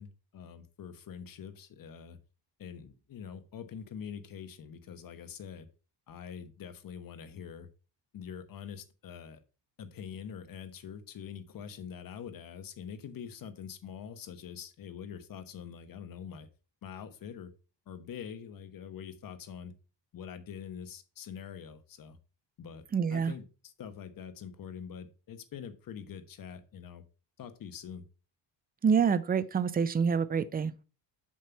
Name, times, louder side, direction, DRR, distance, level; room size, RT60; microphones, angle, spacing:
voice 1, 0.0-2.2 2.6-5.7 6.1-7.7 8.1-9.4 9.8-16.5 16.8-17.5 17.9-19.7 20.1-22.2 22.6-22.8 23.1-27.0 27.4-28.0, left 7 dB, 45° left, 1.1 m, -44 dB
voice 2, 22.9-23.3 28.8-30.8, right 6 dB, 20° right, 0.4 m, -27 dB
7.5 x 5.6 x 4.5 m
cardioid pair, 155°, 46 cm